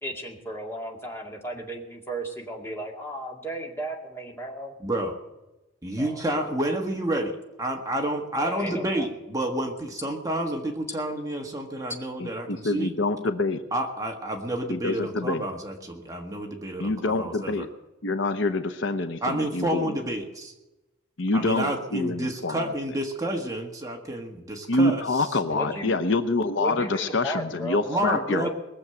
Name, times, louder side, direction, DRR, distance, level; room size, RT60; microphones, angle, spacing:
voice 1, 0.0-4.8 6.0-6.2 8.4-9.1 25.5-26.0 26.6-28.0 28.3-28.5, right 1 dB, 10° left, -1 dB, 2.2 m, -34 dB
voice 2, 4.8-5.1 5.8-12.9 13.7-17.6 19.2-20.5 21.3-25.0 27.9-28.5, right 1 dB, 15° right, 2 dB, 1.5 m, -29 dB
voice 3, 12.2-13.6 14.7-15.4 16.8-17.7 18.0-20.0 21.2-22.7 24.7-28.5, left 2 dB, 60° left, 9 dB, 0.8 m, -26 dB
21.0 x 7.2 x 7.8 m, 1.0 s
head